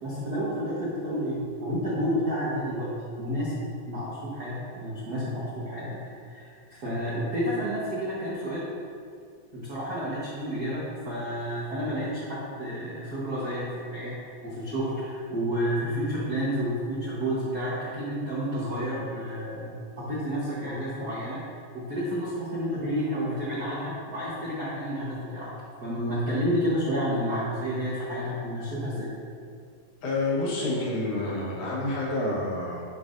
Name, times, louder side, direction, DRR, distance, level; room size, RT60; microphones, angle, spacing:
voice 1, 0.0-6.0 6.3-8.7 9.5-14.1 14.4-21.4 21.7-25.5 25.8-29.1, equal, 75° right, -8 dB, 0.9 m, -30 dB
voice 2, 30.0-32.8, left 2 dB, 70° left, -4 dB, 2.5 m, -28 dB
11.0 x 5.5 x 2.6 m, 2.1 s
omnidirectional pair, 3.9 m